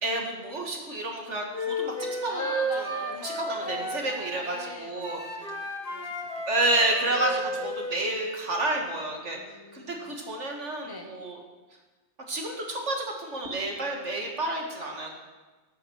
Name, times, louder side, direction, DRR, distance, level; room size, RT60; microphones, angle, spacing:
voice 1, 0.0-2.0 2.2-2.4 2.8-2.9 3.2-5.2 6.5-9.4 9.7-11.4 12.3-15.1, right 2 dB, 55° right, 1 dB, 2.1 m, -30 dB
Wind instrument woodwind instrument, 1.5-4.7 5.0-8.4, equal, 40° left, 2.0 m, -33 dB
voice 2, 2.3-6.2 6.6-6.7 7.1-7.7 9.3-10.2 10.8-11.1, left 2 dB, 25° left, 3 dB, 0.6 m, -44 dB
13.5 x 8.7 x 6.2 m, 1.3 s
omnidirectional pair, 1.5 m